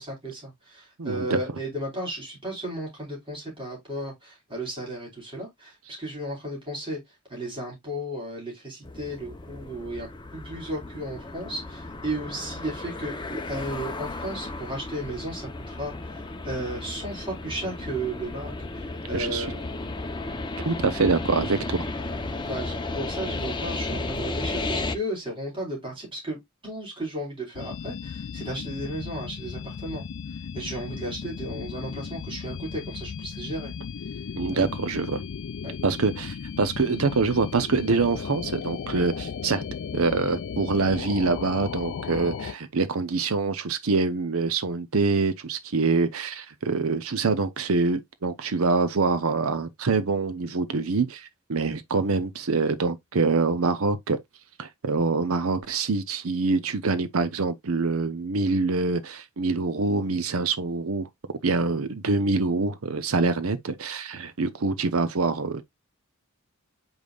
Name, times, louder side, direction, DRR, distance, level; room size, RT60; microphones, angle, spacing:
voice 1, 0.0-7.0 7.3-19.6 22.4-30.0 30.5-33.7 34.1-34.2 34.5-34.7 35.6-35.7, right 1 dB, 25° right, 4.0 m, -34 dB
voice 2, 1.0-1.4 19.1-19.5 20.6-21.9 34.4-35.2 35.8-39.6 39.9-54.2 54.6-61.1 61.4-65.6, right 4 dB, 70° right, 0.7 m, -25 dB
sound 1, 8.8-25.0, left 2 dB, 20° left, 0.8 m, -34 dB
sound 2, 27.5-42.5, left 6 dB, 60° left, 0.4 m, -36 dB
8.0 x 5.3 x 2.4 m
head